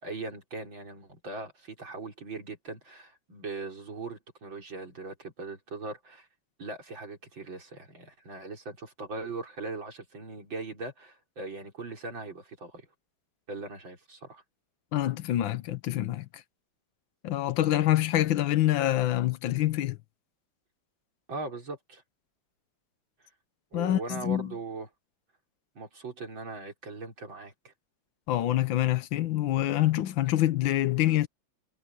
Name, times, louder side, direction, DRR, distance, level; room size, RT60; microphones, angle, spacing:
voice 1, 0.0-6.3 6.6-12.8 13.5-14.4 21.3-22.0 23.7-24.9 25.8-27.7, right 3 dB, 80° right, 5.5 m, -40 dB
voice 2, 14.9-16.3 17.2-20.0 23.7-24.5 28.3-31.3, left 14 dB, 80° left, 1.6 m, -26 dB
omnidirectional pair, 2.1 m